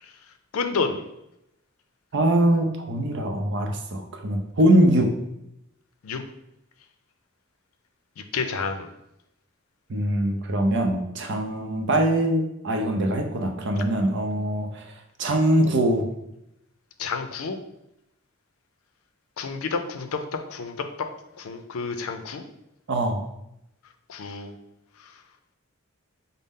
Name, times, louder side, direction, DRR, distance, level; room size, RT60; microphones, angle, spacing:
voice 1, 0.5-1.0 6.0-6.2 8.3-8.9 17.0-17.6 19.4-20.2 20.5-20.8 21.4-22.4 24.1-24.5, left 4 dB, 85° left, 7 dB, 0.5 m, -29 dB
voice 2, 2.1-5.1 9.9-14.9 15.2-16.1 22.9-23.2, right 1 dB, 55° right, 3 dB, 0.6 m, -22 dB
5.2 x 2.0 x 3.6 m, 0.84 s
head